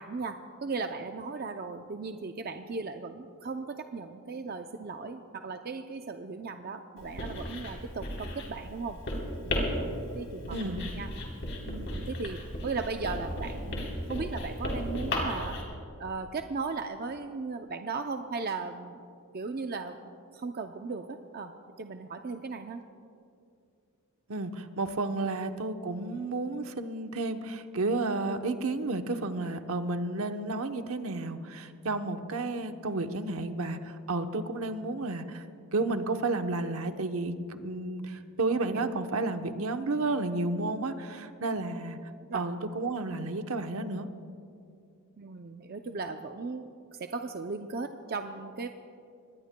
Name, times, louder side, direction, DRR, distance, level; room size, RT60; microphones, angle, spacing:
voice 1, 0.0-9.0 9.4-11.1 11.7-15.6 16.0-19.0 19.3-21.5 21.8-22.8 28.7-28.8 38.7-38.9 42.3-42.5 45.2-48.7, right 4 dB, 45° right, 6 dB, 0.5 m, -37 dB
Writing, 7.0-15.6, left 1 dB, 55° left, 3.6 m, -35 dB
voice 2, 10.5-10.9 24.3-35.4 35.7-42.0 42.3-44.1, right 2 dB, 70° right, 7 dB, 0.9 m, -32 dB
25.0 x 20.5 x 2.2 m, 2.5 s
head